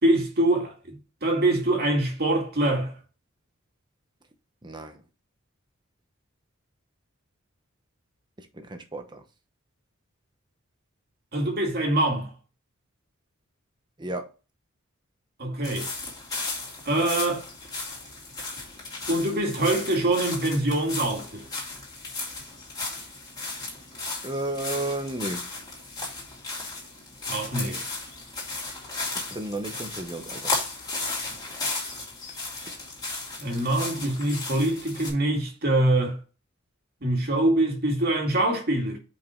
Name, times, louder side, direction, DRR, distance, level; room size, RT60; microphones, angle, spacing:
voice 1, 0.0-1.0 1.2-3.0 11.3-12.3 15.4-15.9 16.9-17.5 19.1-21.4 27.3-27.8 33.4-36.2 37.0-39.0, right 1 dB, 50° right, 2.2 m, -24 dB
voice 2, 4.6-5.0 8.4-9.2 14.0-14.3 24.2-25.5 29.1-30.5, right 1 dB, 20° right, 0.9 m, -33 dB
sound 1, 15.6-35.1, left 3 dB, 20° left, 2.4 m, -35 dB
5.4 x 5.3 x 4.4 m
head